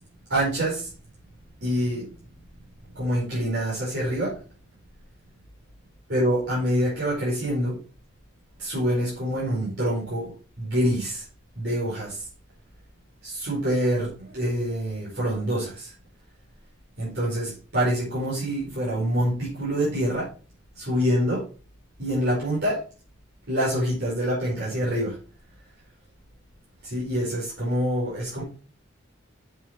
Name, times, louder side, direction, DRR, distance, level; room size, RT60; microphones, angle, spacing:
voice 1, 0.3-0.9 1.6-2.2 2.9-4.4 6.1-7.8 8.6-11.2 11.5-12.3 13.2-15.9 17.0-20.3 20.7-21.4 22.0-22.8 23.5-25.2 26.8-28.4, equal, 55° right, -8 dB, 4.9 m, -26 dB
8.1 x 7.2 x 4.4 m, 0.37 s
head